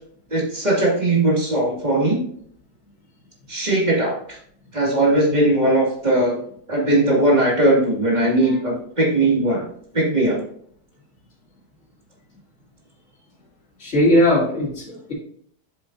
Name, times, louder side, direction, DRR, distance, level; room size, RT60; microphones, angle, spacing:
voice 1, 0.3-2.2 3.5-4.1 4.7-6.4 6.7-9.6 9.9-10.4, right 1 dB, 25° right, -4 dB, 2.3 m, -19 dB
voice 2, 13.8-15.1, left 1 dB, 40° left, -6 dB, 3.1 m, -19 dB
7.8 x 7.2 x 2.7 m, 0.62 s
omnidirectional pair, 1.8 m